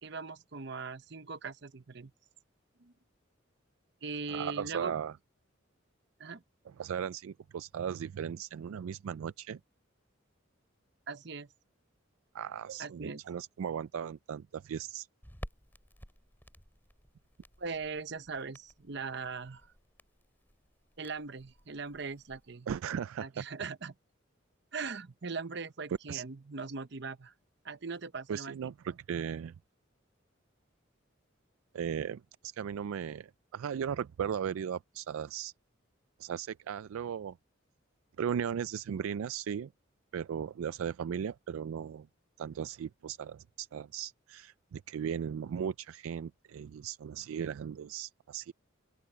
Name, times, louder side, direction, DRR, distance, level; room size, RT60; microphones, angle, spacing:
voice 1, 0.0-2.1 2.8-2.9 4.0-4.9 6.2-6.4 11.1-11.5 12.8-13.2 17.6-19.7 21.0-22.7 23.2-23.9 24.7-27.3 27.6-29.0, right 4 dB, 55° right, 0.8 m, -40 dB
voice 2, 4.3-5.1 6.8-9.6 12.3-15.1 22.7-23.3 26.1-26.2 28.3-29.6 31.7-35.5 36.2-37.4 38.2-39.7 40.1-42.1 42.4-48.5, right 8 dB, 90° right, 0.3 m, -37 dB
Crackle, 15.2-22.5, equal, 10° left, 5.6 m, -53 dB
open air
head